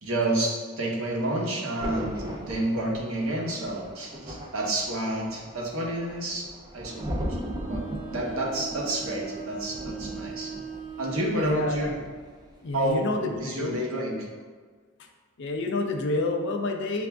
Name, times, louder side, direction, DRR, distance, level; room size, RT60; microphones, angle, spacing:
voice 1, 0.0-6.5 6.7-7.0 7.7-7.8 8.1-10.5 11.0-11.9 12.7-13.1 13.4-14.3, right 1 dB, 70° right, -2 dB, 0.9 m, -29 dB
Thunder, 1.8-12.4 12.7-13.0, equal, 20° right, 0.5 m, -38 dB
Bowed string instrument, 6.8-11.8, right 6 dB, 35° right, 0.9 m, -40 dB
voice 2, 11.4-11.9 12.6-13.8 15.4-17.1, left 2 dB, 55° left, 4 dB, 0.4 m, -29 dB
6.8 x 2.5 x 2.2 m, 1.5 s
head